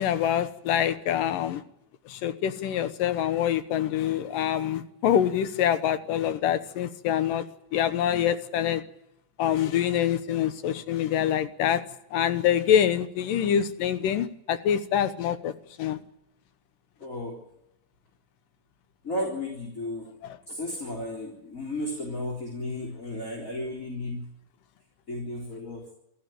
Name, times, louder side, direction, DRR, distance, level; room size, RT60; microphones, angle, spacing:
voice 1, 0.0-1.6 2.1-7.4 7.7-8.8 9.4-11.8 12.1-15.5 15.8-16.0 20.2-20.4, left 9 dB, 70° left, 11 dB, 2.5 m, -25 dB
voice 2, 17.0-17.4 19.0-20.1 20.5-24.2 25.1-25.9, left 1 dB, 20° left, -1 dB, 4.0 m, -34 dB
27.5 x 12.5 x 9.1 m, 0.82 s
omnidirectional pair, 4.5 m